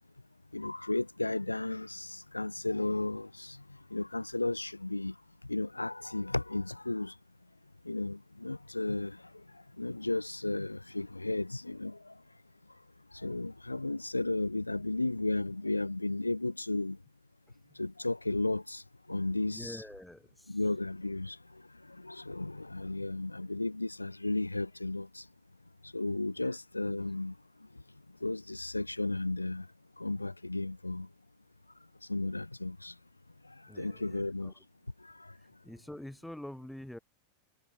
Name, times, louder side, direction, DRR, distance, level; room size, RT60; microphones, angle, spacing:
voice 1, 0.5-3.6 3.9-5.2 5.5-7.1 7.8-9.4 9.8-12.2 13.1-17.0 17.8-18.8 19.1-19.8 20.5-25.3 25.8-27.4 28.2-29.7 30.0-31.1 32.1-32.9 33.4-34.5 35.0-35.3, left 2 dB, 85° left, 0.5 m, -34 dB
voice 2, 19.5-20.6 26.4-26.5 33.7-34.5 35.6-37.0, left 1 dB, ahead, 2.2 m, -46 dB
figure-of-eight pair, 90°, 0 cm